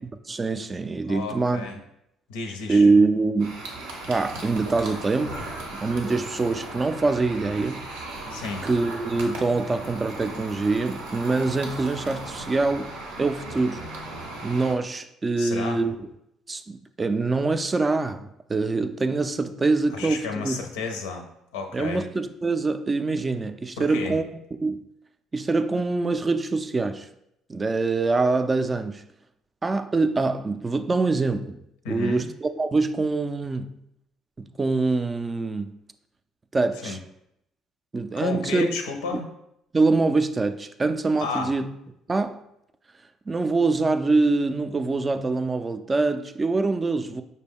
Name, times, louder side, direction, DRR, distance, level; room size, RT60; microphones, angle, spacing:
voice 1, 0.3-1.7 2.7-3.6 4.1-5.4 5.7-7.9 8.6-12.9 13.2-13.8 14.4-15.9 16.5-20.6 21.7-24.2 24.6-24.8 25.3-27.1 27.5-29.0 29.6-31.6 31.9-33.7 34.4-35.7 36.5-37.0 37.9-38.7 39.7-41.7 42.1-42.4 43.3-47.2, right 3 dB, 30° right, 0.3 m, -24 dB
voice 2, 1.1-1.8 2.3-2.9 8.3-8.7 15.4-15.8 19.9-21.3 21.5-22.0 23.8-24.2 31.8-32.2 36.8-37.0 38.2-39.3 41.2-41.5, left 4 dB, 90° left, 0.6 m, -32 dB
sound 1, 3.4-14.7, right 2 dB, 90° right, 0.8 m, -37 dB
5.2 x 2.1 x 3.5 m
supercardioid pair, 70°, 0 cm